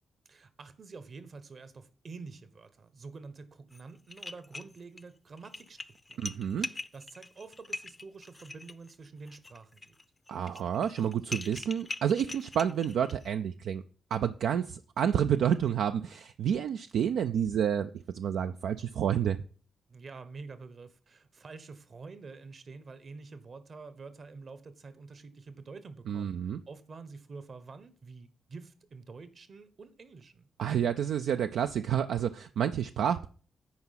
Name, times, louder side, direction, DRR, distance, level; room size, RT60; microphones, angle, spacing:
voice 1, 0.3-5.8 6.1-10.0 19.9-26.4 26.7-30.5, right 4 dB, 55° right, 1.1 m, -48 dB
sound 1, 3.7-3.8 4.1-5.0 5.4-13.3, left 3 dB, 30° left, 0.6 m, -42 dB
voice 2, 6.2-6.7 10.3-13.8 14.1-19.4 26.1-26.6 30.6-33.3, right 8 dB, 75° right, 0.3 m, -29 dB
9.5 x 4.7 x 5.7 m
hypercardioid pair, 45°, 0 cm